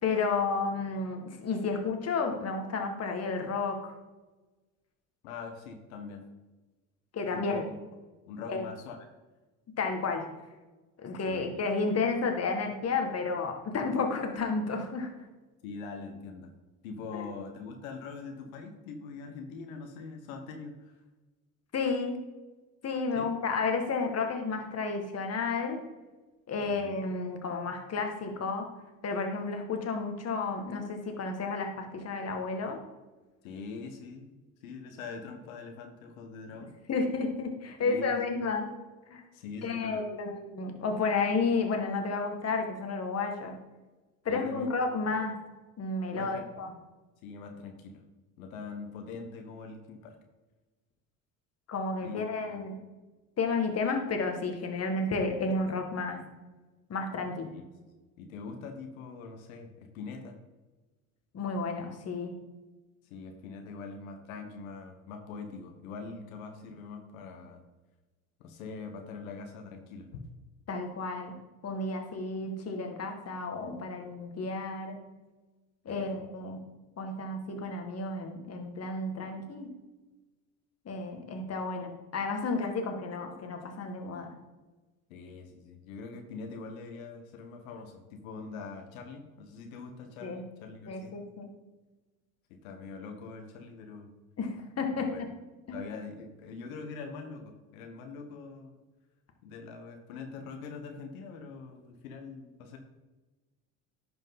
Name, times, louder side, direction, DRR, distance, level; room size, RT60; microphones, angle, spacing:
voice 1, 0.0-3.9 7.1-7.6 8.5-8.6 9.8-10.3 11.0-15.3 17.1-17.3 21.7-22.2 22.8-25.8 26.5-28.7 29.0-32.8 36.9-38.7 39.1-39.2 39.6-43.6 44.3-45.3 45.8-46.7 51.7-52.7 53.4-56.2 56.9-57.5 61.3-62.3 70.7-71.3 71.6-75.0 75.9-76.6 77.0-79.7 80.9-84.3 90.2-90.4 90.9-91.5 94.4-95.1 95.7-95.8, left 4 dB, 35° left, 4 dB, 1.8 m, -32 dB
voice 2, 5.2-6.2 7.3-7.8 8.3-9.1 11.3-11.7 15.6-16.5 16.8-21.0 23.1-23.3 26.7-26.9 33.4-36.8 37.8-38.5 39.3-40.0 44.3-44.7 46.1-46.5 47.2-48.0 48.4-50.2 52.0-52.6 57.5-57.6 58.2-60.4 63.0-67.6 68.4-70.2 75.9-76.2 85.1-91.1 92.5-94.1 94.9-95.2 95.7-98.7 99.4-102.8, left 4 dB, 80° left, 5 dB, 1.2 m, -43 dB
11.0 x 5.2 x 3.9 m, 1.2 s
hypercardioid pair, 80°, 41 cm